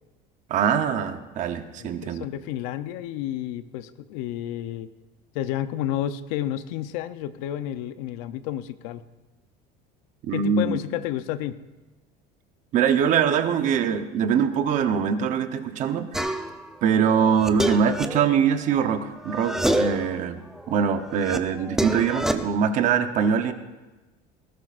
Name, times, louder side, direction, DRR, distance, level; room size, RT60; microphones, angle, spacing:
voice 1, 0.5-2.3 10.3-10.8 12.7-16.3 16.8-20.4 20.7-23.5, right 7 dB, 45° right, 9 dB, 0.9 m, -23 dB
voice 2, 1.8-4.9 5.3-9.0 10.3-11.6, left 12 dB, 85° left, 12 dB, 0.7 m, -31 dB
sound 1, 16.1-16.7 17.1-19.0 19.3-20.1 20.5-22.3, right 1 dB, ahead, 0.5 m, -27 dB
19.5 x 16.5 x 2.5 m, 1.2 s
cardioid pair, 155°, 18 cm